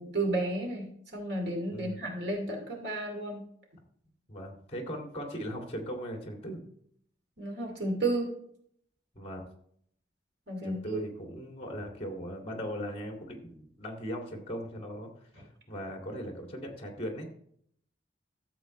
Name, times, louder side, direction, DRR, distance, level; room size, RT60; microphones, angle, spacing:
voice 1, 0.0-3.4 7.4-8.3 10.5-11.0, right 2 dB, 65° right, 1 dB, 2.5 m, -32 dB
voice 2, 4.3-6.6 9.1-9.5 10.6-17.3, equal, 35° left, 2 dB, 2.2 m, -39 dB
13.5 x 7.4 x 3.1 m, 0.66 s
head